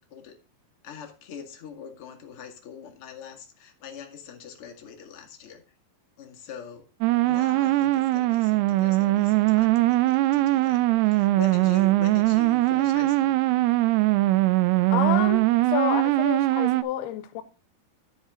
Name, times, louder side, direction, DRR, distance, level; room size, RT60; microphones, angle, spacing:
voice 1, 0.8-5.6 6.2-6.8 7.3-13.4, left 7 dB, 45° left, 2.2 m, -42 dB
sound 1, 7.0-16.8, right 17 dB, 85° right, 2.7 m, -21 dB
voice 2, 14.9-15.4 15.7-17.4, left 10 dB, 85° left, 2.7 m, -28 dB
10.5 x 8.1 x 3.7 m
omnidirectional pair, 4.6 m